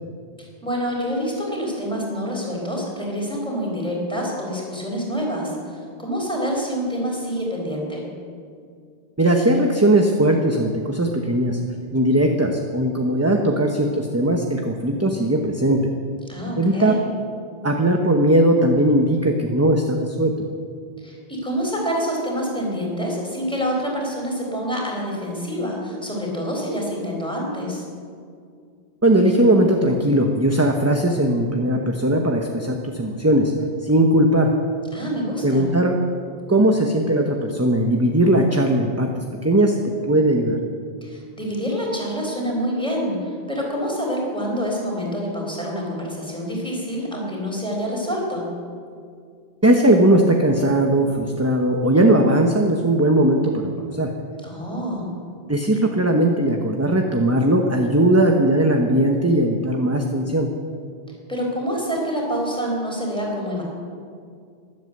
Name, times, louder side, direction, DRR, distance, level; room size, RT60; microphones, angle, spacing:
voice 1, 0.4-8.1 16.3-17.1 21.0-27.8 34.9-35.7 41.0-48.5 54.4-55.1 61.3-63.6, equal, 5° left, -2 dB, 4.1 m, -27 dB
voice 2, 9.2-11.6 11.9-15.8 16.6-16.9 17.6-20.3 29.0-33.5 33.8-34.5 35.4-35.9 36.5-39.8 40.1-40.6 49.6-54.1 55.5-60.5, right 1 dB, 15° right, 2 dB, 0.9 m, -19 dB
13.0 x 11.0 x 7.9 m, 2.2 s
omnidirectional pair, 1.1 m